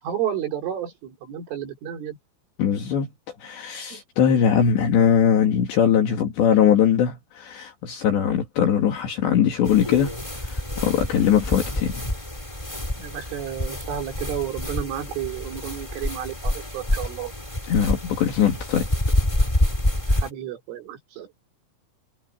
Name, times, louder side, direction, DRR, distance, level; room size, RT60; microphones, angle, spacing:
voice 1, 0.0-2.2 3.9-4.0 13.0-17.3 20.2-21.3, right 10 dB, 85° right, 6.5 m, -31 dB
voice 2, 2.6-3.1 3.4-10.1 10.5-12.1 17.7-18.9, left 8 dB, 65° left, 4.5 m, -21 dB
sound 1, 9.6-20.3, left 1 dB, 10° left, 2.7 m, -27 dB
omnidirectional pair, 5.5 m